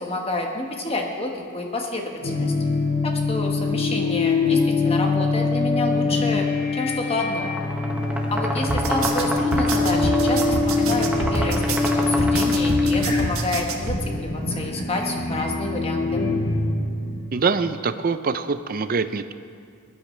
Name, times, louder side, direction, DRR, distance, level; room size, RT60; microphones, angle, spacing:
voice 1, 0.0-2.5 3.0-7.5 8.3-11.6 12.0-16.3, left 2 dB, 25° left, 1 dB, 1.4 m, -29 dB
sound 1, 2.2-17.4, left 3 dB, 75° left, 2.5 m, -24 dB
sound 2, 7.4-13.1, equal, 5° right, 1.1 m, -30 dB
sound 3, 8.7-14.0, right 2 dB, 80° right, 1.4 m, -27 dB
voice 2, 17.3-19.3, right 4 dB, 45° right, 11 dB, 0.5 m, -24 dB
19.0 x 12.0 x 3.3 m, 2.3 s
head